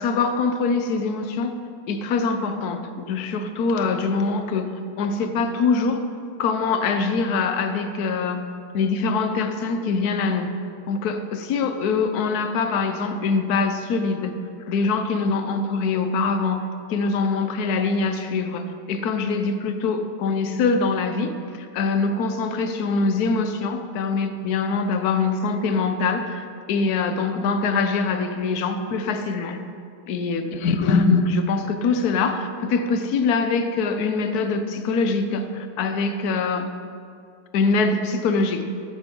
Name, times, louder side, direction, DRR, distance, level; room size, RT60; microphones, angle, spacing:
voice 1, 0.0-1.5 1.9-6.0 6.4-8.4 8.7-10.5 10.9-14.3 14.7-21.3 21.6-29.6 30.1-36.7 37.5-38.7, left 4 dB, 65° left, 7 dB, 1.3 m, -23 dB
15.0 x 9.9 x 3.8 m, 2.4 s
omnidirectional pair, 1.9 m